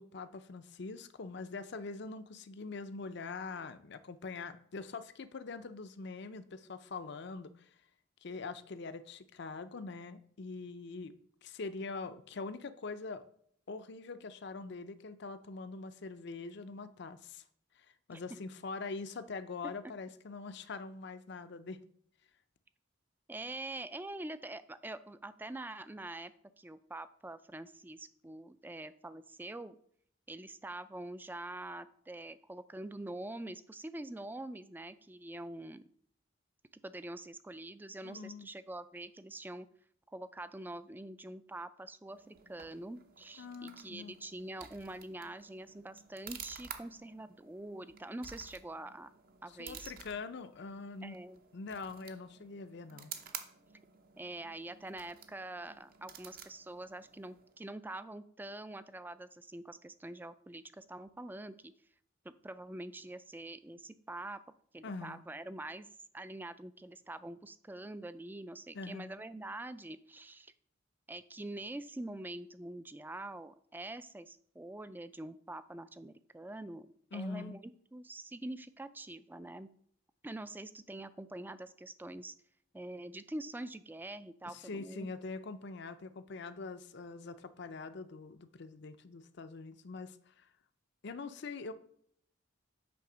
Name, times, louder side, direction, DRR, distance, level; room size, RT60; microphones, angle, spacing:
voice 1, 0.0-7.7 8.2-11.1 11.4-13.2 13.7-17.4 17.8-21.8 38.0-38.5 43.4-44.1 49.6-51.2 51.5-53.1 64.8-65.2 68.7-69.1 77.1-77.6 84.5-90.5 91.0-91.7, left 4 dB, 60° left, 11 dB, 0.6 m, -43 dB
voice 2, 23.3-29.8 30.3-35.8 36.8-39.7 40.1-49.1 49.4-49.9 51.0-51.4 54.2-61.7 62.2-64.4 64.7-65.9 66.1-70.5 71.1-79.7 80.2-82.3 82.7-85.1, right 2 dB, 10° right, 13 dB, 0.3 m, -45 dB
sound 1, 42.1-57.6, right 7 dB, 50° right, 0.8 m, -52 dB
8.5 x 3.5 x 6.1 m, 0.65 s
head